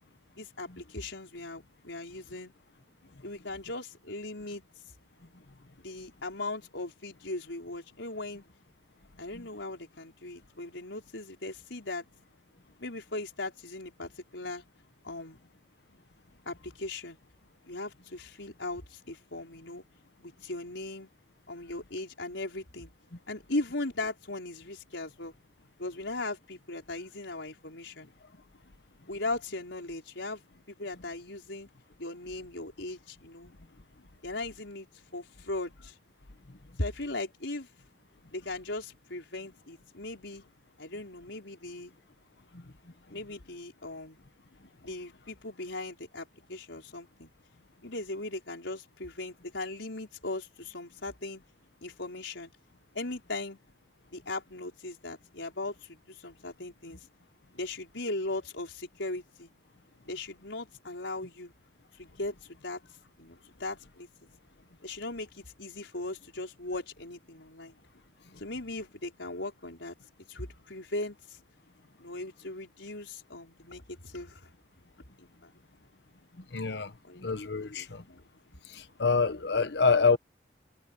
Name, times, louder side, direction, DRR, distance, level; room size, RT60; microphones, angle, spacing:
voice 1, 0.3-2.5 3.2-4.6 5.8-8.4 9.2-12.0 12.8-14.6 15.0-15.4 16.4-17.2 17.7-19.8 20.2-21.1 21.5-22.9 23.3-25.3 25.8-28.1 29.1-30.4 30.7-31.7 32.0-33.5 34.2-34.9 35.1-36.0 36.8-37.7 38.3-40.4 40.8-41.9 43.1-44.2 44.8-47.3 47.8-51.4 51.8-52.5 52.9-53.6 54.1-57.1 57.5-59.5 60.0-61.5 62.0-62.8 63.2-64.1 64.8-67.8 68.4-69.9 70.3-71.4 72.0-74.5 75.2-75.5 77.0-77.4 77.7-78.2, left 2 dB, 80° left, 4.9 m, -38 dB
voice 2, 76.5-76.9 77.2-78.0 78.7-80.2, left 4 dB, 65° left, 1.2 m, -26 dB
head